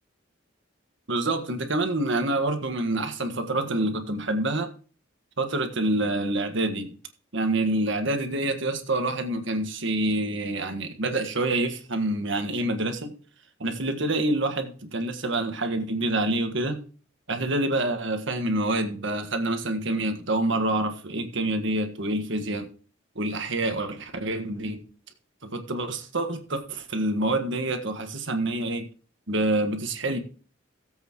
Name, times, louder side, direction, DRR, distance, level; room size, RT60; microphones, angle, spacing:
voice 1, 1.1-4.7 5.4-6.9 7.3-13.1 13.6-16.8 17.3-22.7 23.1-24.8 25.4-28.9 29.3-30.2, right 2 dB, 65° right, 7 dB, 1.6 m, -27 dB
17.5 x 8.0 x 3.1 m, 0.40 s
head